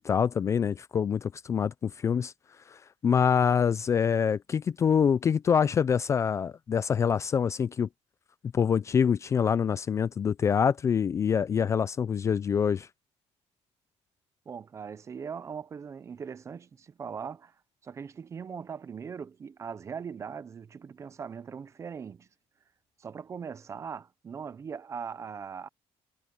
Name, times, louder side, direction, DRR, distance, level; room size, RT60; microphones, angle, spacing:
voice 1, 0.0-2.3 3.0-7.9 8.5-12.9, left 7 dB, 25° left, 0.3 m, -25 dB
voice 2, 14.5-17.5 17.8-22.3 23.0-25.7, right 6 dB, 25° right, 0.6 m, -40 dB
cardioid pair, 180°, 11 cm